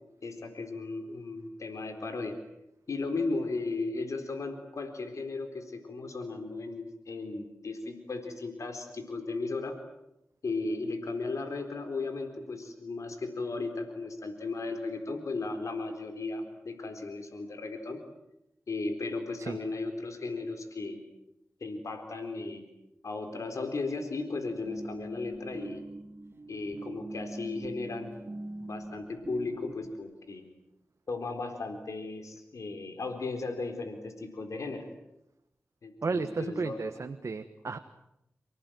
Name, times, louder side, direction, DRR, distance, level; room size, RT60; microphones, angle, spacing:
voice 1, 0.2-2.3 2.9-9.8 10.4-18.0 18.7-21.0 21.6-22.6 23.0-25.8 26.5-28.1 28.6-30.4 31.1-34.9 35.8-36.8, left 3 dB, 80° left, 6 dB, 4.2 m, -36 dB
sound 1, 24.2-29.9, right 2 dB, 50° right, 2.4 m, -43 dB
voice 2, 36.0-37.8, right 4 dB, 65° right, 7 dB, 1.4 m, -33 dB
30.0 x 18.5 x 9.2 m, 0.85 s
cardioid pair, 55°, 5 cm